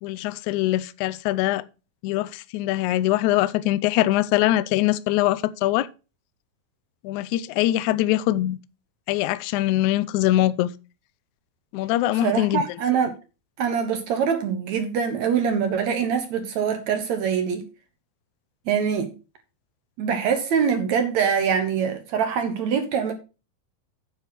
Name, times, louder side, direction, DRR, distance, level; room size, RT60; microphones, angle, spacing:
voice 1, 0.0-1.6 2.0-5.9 7.0-8.6 9.1-10.7 11.7-12.6, left 15 dB, 90° left, 1.7 m, -22 dB
voice 2, 12.2-13.1 13.6-17.6 18.7-19.1 20.0-23.1, right 7 dB, 65° right, 1.9 m, -24 dB
9.5 x 4.9 x 5.9 m
omnidirectional pair, 4.1 m